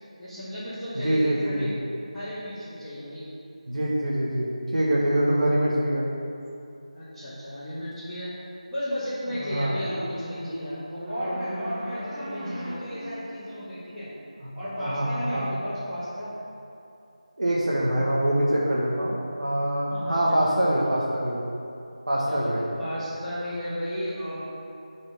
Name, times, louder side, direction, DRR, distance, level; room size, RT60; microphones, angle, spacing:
voice 1, 0.2-1.7 2.1-3.3 6.9-8.3 8.7-14.1 14.6-16.3 19.9-21.1 22.2-24.4, equal, 5° right, -21 dB, 1.8 m, -34 dB
voice 2, 0.9-1.7 3.7-6.1 9.5-9.7 14.4-14.5 14.8-15.5 17.4-19.1 19.4-21.4 22.1-22.7, right 1 dB, 70° right, -6 dB, 1.4 m, -24 dB
sound 1, 9.3-14.4, equal, 25° right, 1.7 m, -37 dB
7.5 x 5.0 x 6.0 m, 2.8 s
figure-of-eight pair, 165°, 4 cm